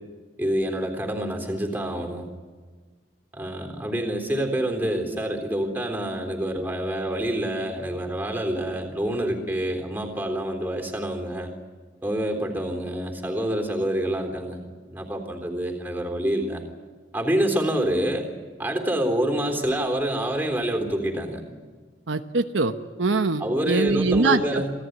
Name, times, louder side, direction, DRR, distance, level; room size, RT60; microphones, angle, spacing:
voice 1, 0.4-2.3 3.3-11.5 12.0-14.6 14.9-16.6 17.1-18.3 18.6-21.4 23.4-24.7, right 1 dB, 10° right, 3 dB, 3.5 m, -27 dB
voice 2, 22.1-22.7 23.0-24.6, right 3 dB, 85° right, 8 dB, 1.0 m, -23 dB
27.5 x 17.5 x 9.4 m, 1.4 s
head